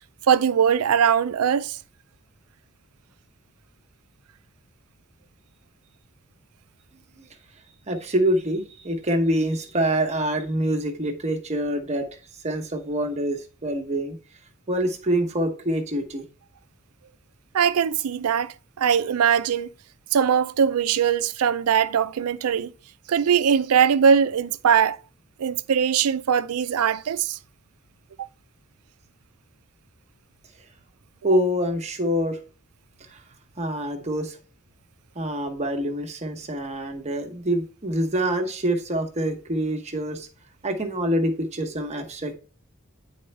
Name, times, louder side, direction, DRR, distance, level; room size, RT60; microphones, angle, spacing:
voice 1, 0.3-1.8 17.5-19.7 20.1-22.7 23.1-25.0 25.4-27.4 28.2-28.3, right 7 dB, 85° right, 0.4 m, -21 dB
voice 2, 7.9-12.1 12.4-14.2 14.7-16.3 31.2-32.4 33.1-33.2 33.6-34.4 35.1-40.3 40.6-42.3, right 1 dB, 30° right, 1.0 m, -25 dB
9.2 x 4.3 x 3.2 m
head